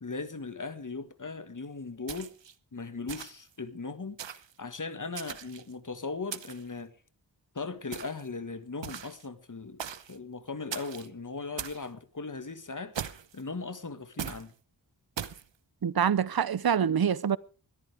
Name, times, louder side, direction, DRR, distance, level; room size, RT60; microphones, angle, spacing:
voice 1, 0.0-2.3 2.7-4.2 4.6-6.9 7.5-9.8 10.1-12.9 13.3-14.5, left 4 dB, 45° left, 1.7 m, -38 dB
sound 1, 2.1-2.5 3.1-3.5 4.2-4.5 5.1-5.7 6.3-6.7 7.9-8.3 8.8-9.3 9.8-10.2 10.7-11.1 11.6-11.9 12.9-13.4 14.2-14.5 15.2-15.4, right 8 dB, 85° right, 1.0 m, -39 dB
voice 2, 15.8-17.4, right 8 dB, 55° right, 0.7 m, -25 dB
21.0 x 14.0 x 3.5 m
wide cardioid pair, 70°, 43 cm